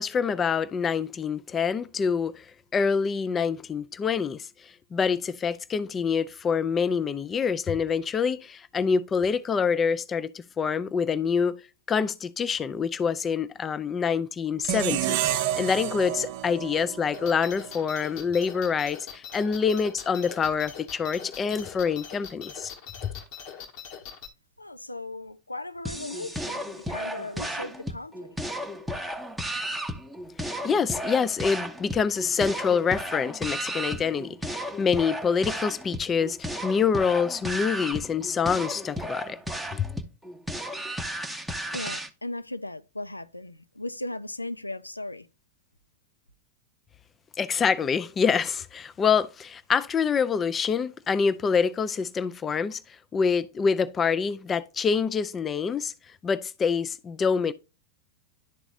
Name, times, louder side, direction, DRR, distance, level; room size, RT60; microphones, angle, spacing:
voice 1, 0.0-2.5 2.7-11.6 11.9-22.7 30.4-39.4 39.8-39.9 47.4-52.8 53.1-55.9 56.2-57.5, left 6 dB, 20° left, 0.4 m, -26 dB
sound 1, 14.6-17.8, right 12 dB, 45° right, 0.6 m, -30 dB
sound 2, 17.1-24.3, left 7 dB, 45° left, 1.2 m, -42 dB
voice 2, 24.6-28.4 41.7-45.3, left 2 dB, 85° left, 0.4 m, -37 dB
sound 3, 25.8-42.1, equal, ahead, 0.8 m, -34 dB
11.5 x 4.0 x 2.5 m
figure-of-eight pair, 90°, 0 cm